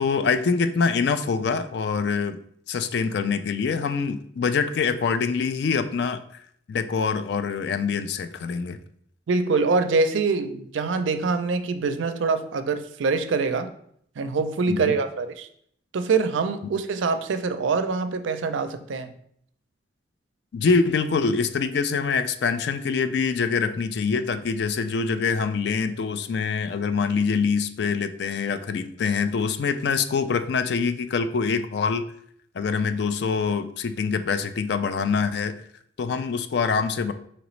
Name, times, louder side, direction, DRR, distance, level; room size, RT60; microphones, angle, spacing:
voice 1, 0.0-2.4 2.7-6.4 6.7-8.8 14.7-15.0 20.5-32.0 32.5-35.5 36.0-37.1, left 5 dB, 60° left, 10 dB, 0.3 m, -25 dB
voice 2, 9.3-13.7 14.2-15.5 15.9-19.1, right 4 dB, 85° right, 9 dB, 0.4 m, -24 dB
5.0 x 3.0 x 3.1 m, 0.67 s
head